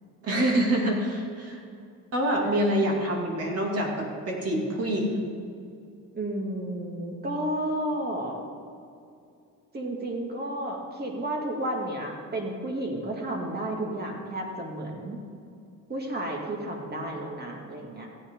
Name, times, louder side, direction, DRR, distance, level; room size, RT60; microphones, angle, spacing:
voice 1, 0.2-1.6 2.1-5.2, right 1 dB, 45° right, -1 dB, 2.9 m, -26 dB
voice 2, 6.1-8.4 9.7-15.2 15.9-18.1, right 1 dB, 30° right, 0 dB, 2.3 m, -32 dB
15.0 x 10.0 x 3.9 m, 2.5 s
cardioid pair, 120°, 33 cm